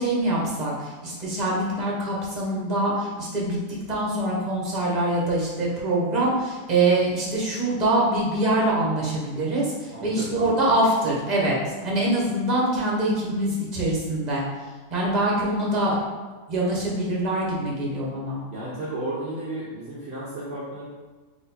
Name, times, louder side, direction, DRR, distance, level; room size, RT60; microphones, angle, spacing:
voice 1, 0.0-3.6 3.9-14.4 14.9-16.0 16.5-18.4, right 1 dB, 30° right, -4 dB, 1.0 m, -24 dB
voice 2, 9.9-10.5 18.5-20.8, right 1 dB, 55° right, -7 dB, 0.7 m, -33 dB
4.3 x 2.9 x 4.1 m, 1.3 s
omnidirectional pair, 2.0 m